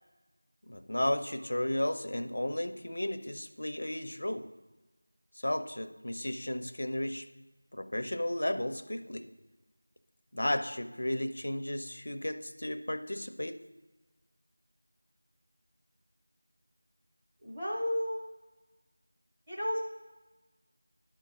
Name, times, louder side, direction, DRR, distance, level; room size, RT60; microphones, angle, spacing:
voice 1, 0.7-4.5 5.3-7.3 7.7-9.3 10.3-13.6, left 1 dB, 55° left, 8 dB, 0.6 m, -34 dB
voice 2, 17.4-18.3 19.5-19.8, equal, 15° right, -9 dB, 0.7 m, -32 dB
11.0 x 4.6 x 6.0 m, 1.2 s
figure-of-eight pair, 175°, 0 cm